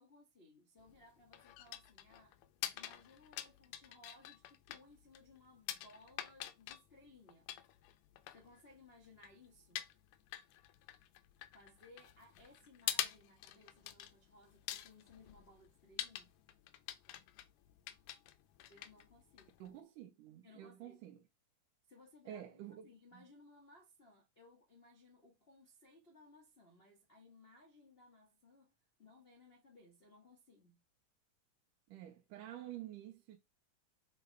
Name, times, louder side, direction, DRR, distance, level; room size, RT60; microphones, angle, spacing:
voice 1, 0.0-2.4 2.7-7.5 8.3-9.8 11.5-16.3 18.7-19.6 20.4-21.0 21.9-28.7 29.0-30.8, left 2 dB, 70° left, 0.5 m, -62 dB
sound 1, 0.8-19.8, left 13 dB, 85° left, 2.3 m, -47 dB
voice 2, 19.6-21.2 22.3-23.2 31.9-33.4, right 12 dB, 80° right, 2.4 m, -50 dB
6.5 x 4.0 x 4.6 m
omnidirectional pair, 3.7 m